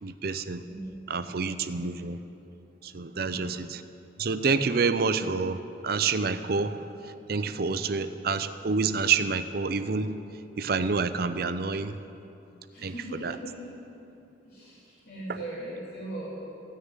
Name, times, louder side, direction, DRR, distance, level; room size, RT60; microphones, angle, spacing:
voice 1, 0.0-0.6 1.1-2.2 2.8-3.8 4.2-10.2 10.6-12.0 12.8-13.4 15.3-15.4, right 4 dB, 55° right, 11 dB, 0.5 m, -28 dB
voice 2, 12.7-13.7 14.4-16.4, right 1 dB, 50° left, -11 dB, 3.1 m, -39 dB
14.5 x 6.5 x 9.1 m, 2.9 s
head